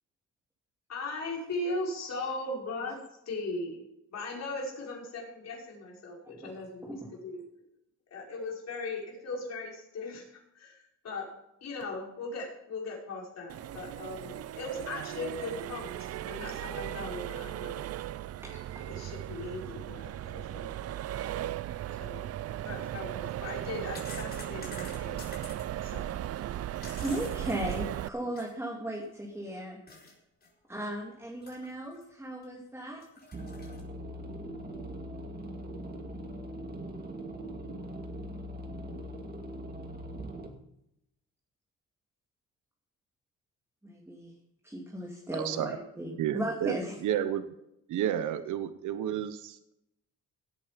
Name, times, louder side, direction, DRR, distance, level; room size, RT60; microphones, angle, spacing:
voice 1, 0.9-3.0 3.3-3.8 4.1-7.4 8.1-11.3 11.6-17.8 18.9-20.8 22.0-22.3 22.6-25.2 25.8-26.3 28.2-28.3, left 2 dB, 60° left, -2 dB, 5.6 m, -38 dB
voice 2, 6.2-7.0 18.4-18.5 27.0-29.8 30.7-33.0 43.8-44.3 44.6-46.9, right 1 dB, 10° right, -2 dB, 2.9 m, -37 dB
Accelerating revving vroom, 13.5-28.1, right 12 dB, 55° right, 0.5 m, -37 dB
sound 1, 22.9-23.0 23.6-25.6 26.5-28.6 29.0-29.1 29.9-30.1 30.4-30.5 31.4-32.0 32.4-32.5 33.0-33.8, left 3 dB, 30° left, 4.4 m, -48 dB
sound 2, 33.3-40.5, right 1 dB, 30° right, 2.6 m, -41 dB
voice 3, 45.3-45.8 46.2-46.7 47.0-47.4 47.9-49.7, right 10 dB, 80° right, 11 dB, 1.0 m, -31 dB
17.5 x 8.6 x 5.2 m, 0.82 s
cardioid pair, 90°, 30 cm